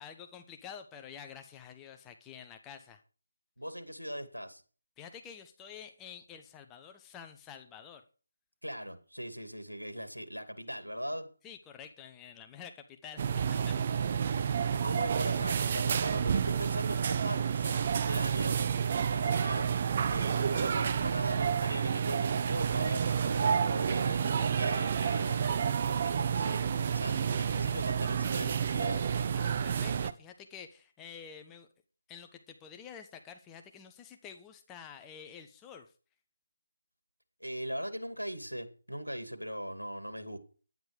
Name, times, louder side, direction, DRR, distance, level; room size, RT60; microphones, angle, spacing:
voice 1, 0.0-3.0 5.0-8.0 11.4-14.1 29.3-31.7 32.1-35.9, left 8 dB, 10° left, 0.9 m, -49 dB
voice 2, 3.6-4.6 8.6-11.3 14.7-18.6 19.1-19.7 20.1-29.1 37.4-40.4, equal, 90° right, 2.5 m, -40 dB
sound 1, 13.2-30.1, right 7 dB, 30° right, 0.6 m, -30 dB
10.5 x 9.9 x 5.0 m
figure-of-eight pair, 155°, 0 cm